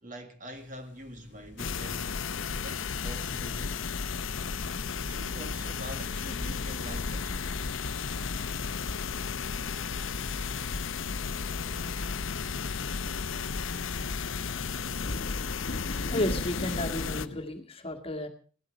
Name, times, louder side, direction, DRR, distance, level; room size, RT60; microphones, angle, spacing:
voice 1, 0.0-3.8 4.9-7.4, right 1 dB, 40° right, 1.8 m, -45 dB
sound 1, 0.6-17.4, left 1 dB, 60° left, 1.1 m, -44 dB
sound 2, 1.6-17.3, left 5 dB, 85° left, 0.7 m, -33 dB
voice 2, 16.1-18.3, left 1 dB, 30° left, 1.8 m, -32 dB
16.5 x 12.0 x 5.1 m
head